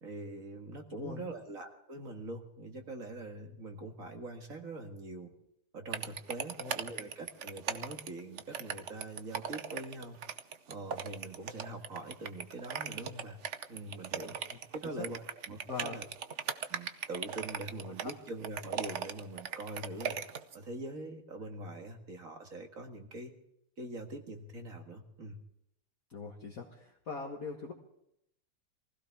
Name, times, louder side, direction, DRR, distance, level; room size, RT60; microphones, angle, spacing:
voice 1, 0.0-5.3 5.7-10.2 10.7-13.4 13.7-14.4 14.7-16.1 16.7-20.2 20.5-23.3 23.8-25.4, right 2 dB, 40° right, 4 dB, 2.0 m, -43 dB
sound 1, 5.9-20.6, right 7 dB, 70° right, 0.6 m, -38 dB
voice 2, 15.7-16.0 26.1-27.7, left 4 dB, 45° left, 0 dB, 1.7 m, -41 dB
23.5 x 16.0 x 3.6 m, 0.77 s
omnidirectional pair, 2.4 m